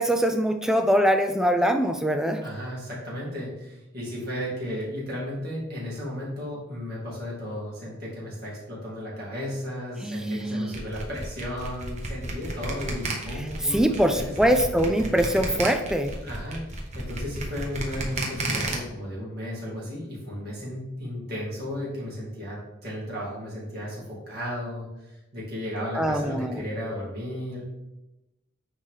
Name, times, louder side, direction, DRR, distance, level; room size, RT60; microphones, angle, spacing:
voice 1, 0.0-2.4 10.0-10.7 13.7-16.1 26.0-26.6, equal, 5° right, 7 dB, 0.3 m, -23 dB
voice 2, 2.4-14.6 16.2-16.6 16.9-27.6, equal, 50° right, -5 dB, 2.4 m, -34 dB
sound 1, 10.7-18.7, right 2 dB, 35° right, 1.1 m, -33 dB
9.3 x 3.2 x 3.8 m, 0.95 s
head